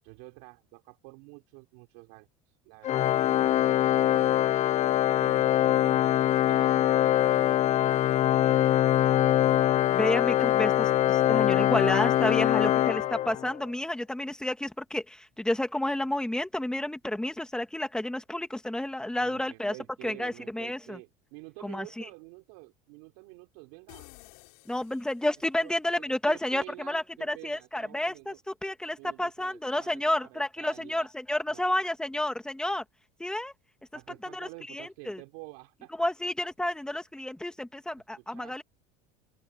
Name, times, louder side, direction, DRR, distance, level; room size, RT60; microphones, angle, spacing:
voice 1, 0.0-2.3 2.6-4.4 5.2-8.9 19.2-24.1 25.6-28.4 29.0-31.1 31.5-31.9 33.9-36.1 38.2-38.6, right 29 dB, 80° right, 5.1 m, -49 dB
Organ, 2.8-13.7, left 13 dB, 40° left, 0.6 m, -23 dB
voice 2, 9.9-19.7 20.0-21.0 21.6-22.0 24.7-32.8 33.2-33.5 34.2-35.2 36.0-38.6, left 1 dB, 5° left, 1.9 m, -31 dB
sound 1, 23.9-25.7, left 29 dB, 85° left, 7.1 m, -53 dB
open air
cardioid pair, 135°, 18 cm